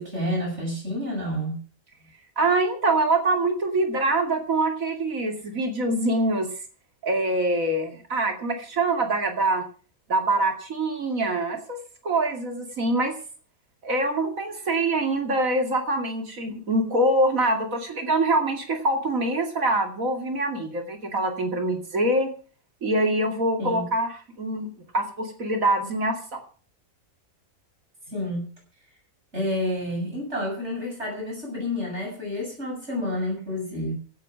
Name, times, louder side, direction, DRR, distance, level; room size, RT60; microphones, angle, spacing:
voice 1, 0.0-1.6 23.6-23.9 28.1-28.5 29.3-33.9, left 1 dB, 50° right, 0 dB, 7.7 m, -29 dB
voice 2, 2.4-6.5 7.0-9.6 10.1-11.8 12.0-13.1 13.8-22.3 22.8-24.1 24.4-24.7 24.9-26.4, right 2 dB, 65° right, 5 dB, 2.9 m, -24 dB
16.0 x 8.9 x 6.3 m, 0.40 s
omnidirectional pair, 1.5 m